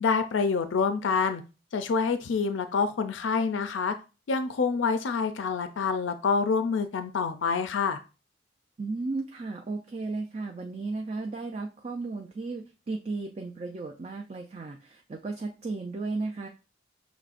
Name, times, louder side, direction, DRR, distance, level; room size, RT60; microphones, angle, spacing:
voice 1, 0.0-1.4 1.7-3.9 4.3-8.0, left 5 dB, 75° left, 9 dB, 0.4 m, -27 dB
voice 2, 8.8-16.5, right 3 dB, 35° right, 2 dB, 0.4 m, -34 dB
6.2 x 3.1 x 2.5 m, 0.31 s
head